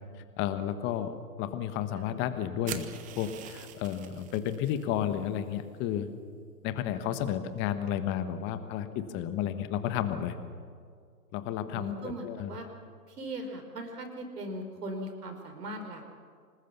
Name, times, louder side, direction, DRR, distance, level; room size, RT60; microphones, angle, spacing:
voice 1, 0.4-2.8 3.2-6.1 6.6-10.3 11.3-12.5, left 10 dB, 25° left, 10 dB, 1.4 m, -32 dB
sound 1, 2.7-4.8, right 11 dB, 15° right, 0.9 m, -43 dB
voice 2, 11.7-12.7 13.1-16.1, right 1 dB, 75° right, 5 dB, 5.0 m, -39 dB
25.5 x 20.0 x 7.0 m, 2.2 s
hypercardioid pair, 130°, 48 cm